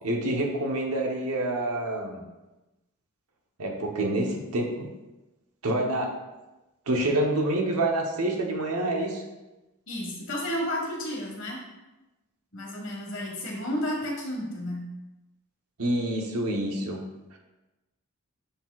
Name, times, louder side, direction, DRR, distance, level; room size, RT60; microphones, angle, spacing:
voice 1, 0.0-2.2 3.6-4.9 5.6-6.1 6.9-9.2 15.8-17.0, right 1 dB, 85° right, 1 dB, 1.0 m, -27 dB
voice 2, 9.9-11.6 12.5-14.8, left 1 dB, 55° left, -2 dB, 1.8 m, -32 dB
6.9 x 5.8 x 2.4 m, 1.0 s
head